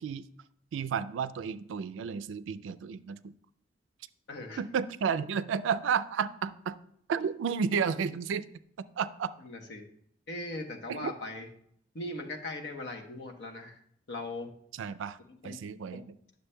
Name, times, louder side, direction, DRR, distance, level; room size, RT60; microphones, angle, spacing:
voice 1, 0.7-3.3 4.6-6.8 7.1-8.4 9.0-9.3 10.9-11.1 14.8-15.2 15.4-16.0, right 6 dB, 85° right, 15 dB, 0.3 m, -32 dB
voice 2, 4.3-4.6 9.4-9.8 10.3-11.5 11.9-13.8 14.1-14.5 15.3-15.6 15.9-16.0, left 2 dB, 65° left, 4 dB, 1.0 m, -39 dB
9.7 x 6.6 x 2.2 m, 0.68 s
head